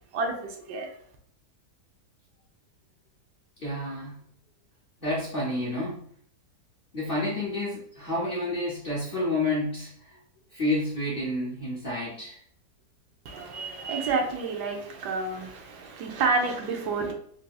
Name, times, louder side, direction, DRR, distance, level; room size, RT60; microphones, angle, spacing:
voice 1, 0.1-0.9 13.2-17.1, right 4 dB, 75° right, 1.1 m, -29 dB
voice 2, 3.6-4.2 5.0-6.0 6.9-9.9 10.5-12.4 17.0-17.1, left 1 dB, 50° left, 0.7 m, -29 dB
3.7 x 2.7 x 2.3 m
omnidirectional pair, 1.8 m